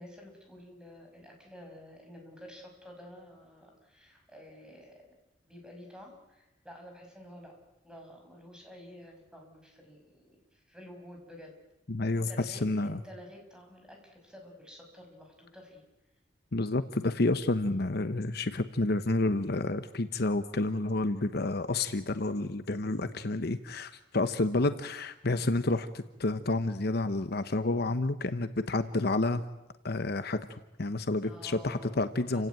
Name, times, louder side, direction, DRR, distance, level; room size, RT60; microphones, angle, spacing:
voice 1, 0.0-5.1 5.4-7.6 7.8-11.6 12.2-15.8 25.3-25.5 31.2-32.0 32.3-32.5, equal, 5° right, 2 dB, 5.9 m, -50 dB
voice 2, 11.9-13.0 16.5-29.4 29.8-32.5, left 2 dB, 55° left, 10 dB, 1.0 m, -30 dB
29.0 x 16.5 x 9.2 m, 0.98 s
head